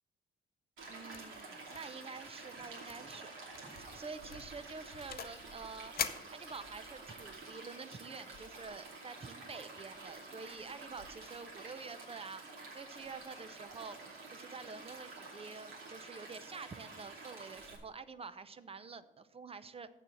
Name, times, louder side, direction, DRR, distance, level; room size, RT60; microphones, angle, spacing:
Stream, 0.8-17.8, right 3 dB, 80° right, 2.7 m, -50 dB
voice 1, 0.9-3.3 3.6-12.4 12.7-14.0 14.3-19.9, right 4 dB, 30° right, 13 dB, 0.6 m, -48 dB
sound 1, 1.1-1.4 1.7-2.0 2.2-2.3 2.9-3.1 3.5-3.8 4.3-5.4 6.0-6.9, left 8 dB, 50° left, 0.7 m, -41 dB
7.4 x 6.6 x 7.5 m, 1.1 s
cardioid pair, 90°, 20 cm